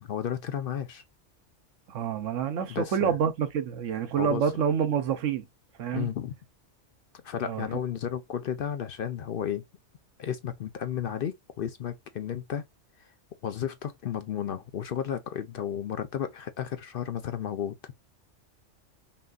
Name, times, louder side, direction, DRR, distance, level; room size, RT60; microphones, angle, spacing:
voice 1, 0.0-1.0 2.7-3.1 4.2-4.4 5.9-6.3 7.2-9.6 10.2-12.6 13.4-17.8, left 9 dB, 60° left, 0.7 m, -33 dB
voice 2, 1.9-5.5 5.8-6.1 7.4-7.7, right 8 dB, 85° right, 1.1 m, -27 dB
5.6 x 2.5 x 2.3 m
omnidirectional pair, 1.3 m